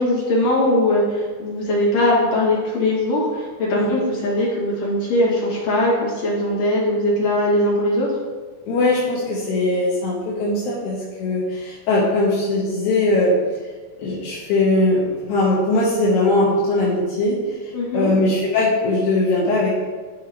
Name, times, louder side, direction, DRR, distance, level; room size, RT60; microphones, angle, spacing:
voice 1, 0.0-8.2 17.7-18.1, left 1 dB, 60° left, -6 dB, 3.3 m, -20 dB
voice 2, 8.7-13.4 14.0-17.4 17.9-19.7, left 2 dB, 80° left, -6 dB, 2.6 m, -20 dB
12.0 x 5.1 x 3.1 m, 1.4 s
omnidirectional pair, 3.4 m